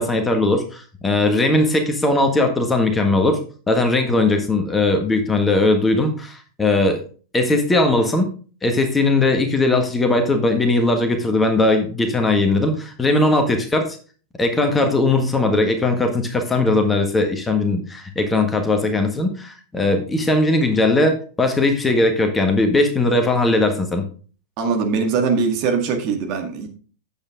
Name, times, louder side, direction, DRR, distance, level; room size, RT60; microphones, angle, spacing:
voice 1, 0.0-3.4 3.7-7.0 7.3-8.3 8.6-14.0 14.4-24.0, left 2 dB, 15° left, 5 dB, 1.6 m, -19 dB
voice 2, 24.6-26.7, right 5 dB, 40° right, 3 dB, 1.9 m, -21 dB
8.9 x 7.8 x 3.7 m, 0.39 s
figure-of-eight pair, 90°, 0 cm